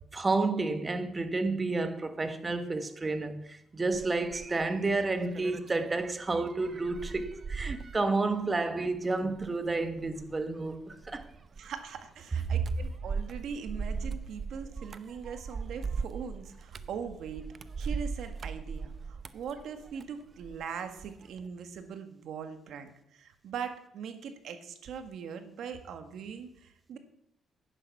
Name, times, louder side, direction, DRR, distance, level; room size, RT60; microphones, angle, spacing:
voice 1, 0.1-11.3, right 3 dB, 25° right, 1.4 m, -30 dB
sound 1, 3.9-20.6 21.0-21.4, right 5 dB, 45° right, 0.7 m, -40 dB
voice 2, 11.6-17.5 17.8-27.0, right 7 dB, 75° right, 1.7 m, -41 dB
10.5 x 10.0 x 6.0 m
cardioid pair, 90°, 0 cm